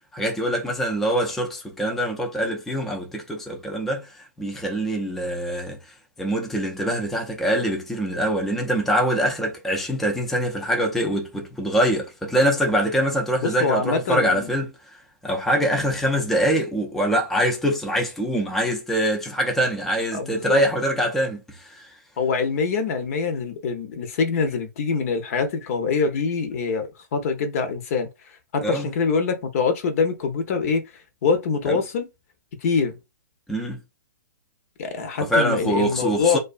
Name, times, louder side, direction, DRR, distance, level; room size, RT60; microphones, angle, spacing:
voice 1, 0.1-5.8 6.2-21.9 28.6-28.9 31.7-31.8 33.5-33.8 35.2-36.4, right 1 dB, ahead, 0.4 m, -24 dB
voice 2, 13.4-14.5 20.1-20.6 22.2-28.1 28.5-30.8 31.2-32.1 32.6-33.0 34.8-36.4, left 5 dB, 50° left, 0.7 m, -24 dB
2.4 x 2.3 x 2.4 m
hypercardioid pair, 130°, 10 cm